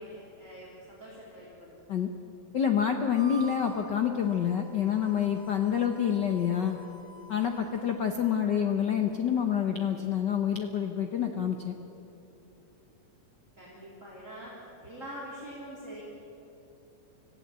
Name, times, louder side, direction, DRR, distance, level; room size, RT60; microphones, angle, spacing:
voice 1, 0.0-2.0 7.7-8.0 13.6-16.0, equal, 25° right, -6 dB, 3.7 m, -45 dB
voice 2, 2.5-6.8 7.3-11.7, left 8 dB, 70° left, 5 dB, 1.0 m, -27 dB
Harmonica, 3.0-8.7, right 3 dB, 55° left, 6.3 m, -49 dB
26.0 x 15.5 x 8.2 m, 2.9 s
omnidirectional pair, 3.4 m